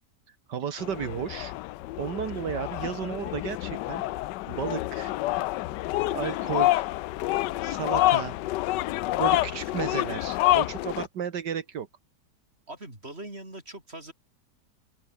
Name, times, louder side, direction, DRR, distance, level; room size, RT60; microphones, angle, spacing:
voice 1, 0.3-1.5 2.0-5.1 6.1-6.9 7.6-8.4 9.2-11.9, right 8 dB, 80° right, 2.1 m, -33 dB
sound 1, 0.8-11.1, left 17 dB, 85° left, 1.2 m, -28 dB
voice 2, 12.7-14.1, right 1 dB, 35° right, 6.9 m, -42 dB
open air
omnidirectional pair, 1.8 m